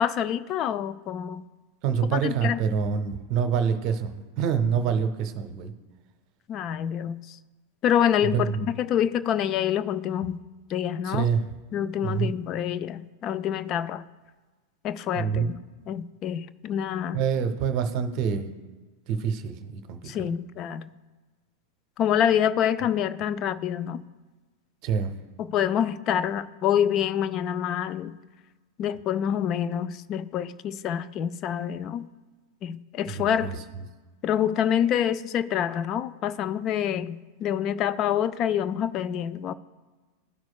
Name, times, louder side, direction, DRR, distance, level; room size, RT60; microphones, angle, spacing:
voice 1, 0.0-1.4 2.1-2.6 6.5-7.2 7.8-10.4 10.7-11.3 11.7-14.1 14.8-15.5 15.9-17.2 20.1-20.9 22.0-24.0 25.4-28.2 28.8-32.1 32.6-33.6 34.2-39.5, left 9 dB, 35° left, 0.4 m, -26 dB
voice 2, 1.8-4.1 4.4-5.7 8.3-8.6 11.0-11.4 12.0-12.3 15.1-15.5 17.1-18.5 19.1-20.3 24.8-25.1 33.1-33.6, right 7 dB, 40° right, 0.8 m, -26 dB
15.0 x 6.0 x 2.3 m
figure-of-eight pair, 90°, 0 cm